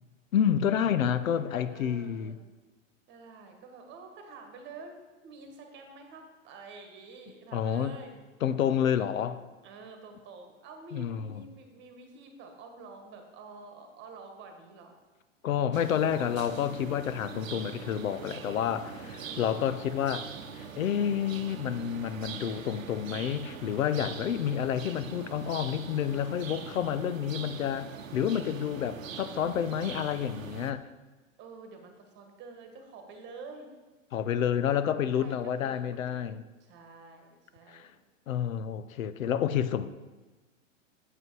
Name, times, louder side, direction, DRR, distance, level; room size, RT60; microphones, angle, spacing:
voice 1, 0.3-2.4 7.5-8.0 8.4-9.4 10.9-11.2 15.4-20.3 20.5-30.8 34.1-36.4 37.7-37.9 38.3-39.9, left 9 dB, 90° left, 0.7 m, -29 dB
voice 2, 1.2-2.4 3.1-8.2 9.6-15.0 19.0-19.6 24.3-24.4 25.0-25.2 31.4-33.7 34.7-36.3 36.6-37.9 39.1-39.6, right 4 dB, 30° right, 1.3 m, -49 dB
sound 1, 15.7-30.7, right 6 dB, 85° right, 0.8 m, -42 dB
8.1 x 5.4 x 4.6 m
hypercardioid pair, 130°, 39 cm